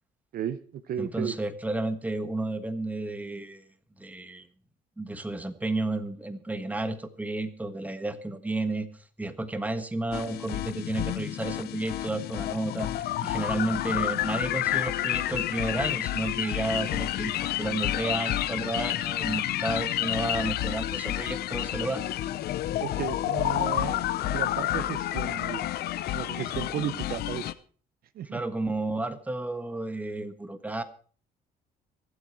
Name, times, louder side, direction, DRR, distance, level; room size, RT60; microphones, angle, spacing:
voice 1, 0.3-1.4 22.8-25.7 26.1-27.5 28.1-28.4, right 9 dB, 60° right, 14 dB, 1.0 m, -34 dB
voice 2, 1.0-3.6 4.0-4.5 5.0-8.9 9.2-22.0 28.3-30.8, right 2 dB, 10° right, 10 dB, 1.4 m, -32 dB
sound 1, 10.1-27.5, left 13 dB, 70° left, 0.8 m, -30 dB
24.0 x 8.1 x 4.6 m, 0.42 s
cardioid pair, 110°, 17 cm